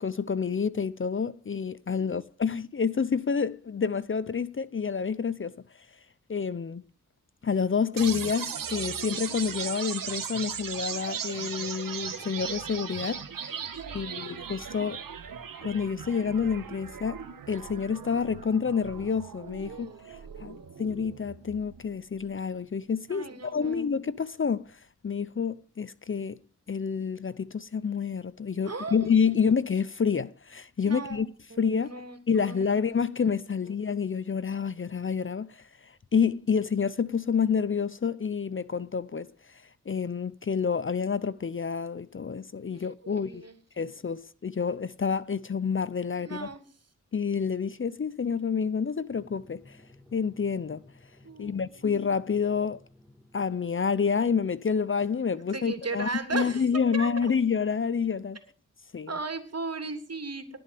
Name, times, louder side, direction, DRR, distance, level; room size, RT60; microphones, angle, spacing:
voice 1, 0.0-5.6 6.3-6.8 7.4-13.2 13.9-15.0 15.6-17.2 17.5-23.3 23.5-26.4 26.7-31.3 31.6-31.9 32.3-39.3 39.9-43.5 43.8-46.5 47.1-49.8 50.1-50.8 51.4-52.8 53.3-58.4 58.9-59.1, left 6 dB, 40° left, 0.7 m, -28 dB
sound 1, 8.0-21.9, right 7 dB, 90° right, 2.1 m, -38 dB
voice 2, 13.7-14.4 19.6-20.8 23.1-23.9 28.6-29.0 30.8-31.2 31.5-32.7 33.1-33.2 42.7-43.5 46.1-46.6 51.2-51.9 55.5-57.3 59.1-60.6, right 3 dB, 50° right, 3.2 m, -37 dB
Drum, 49.1-54.2, left 1 dB, ahead, 6.7 m, -57 dB
19.5 x 7.8 x 7.6 m
cardioid pair, 55°, 32 cm